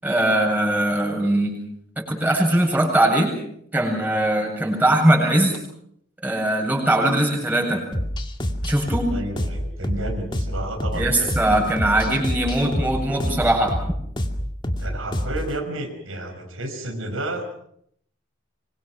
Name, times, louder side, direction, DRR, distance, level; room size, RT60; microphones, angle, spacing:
voice 1, 0.0-1.5 2.0-3.3 3.7-5.5 6.2-7.8 8.6-9.1 10.9-13.8, right 1 dB, 10° right, -1 dB, 7.8 m, -20 dB
sound 1, 7.9-15.5, equal, 25° left, 2.2 m, -27 dB
voice 2, 9.1-12.0 14.8-17.6, right 1 dB, 85° right, 4 dB, 5.9 m, -31 dB
26.0 x 24.5 x 6.1 m, 0.70 s
head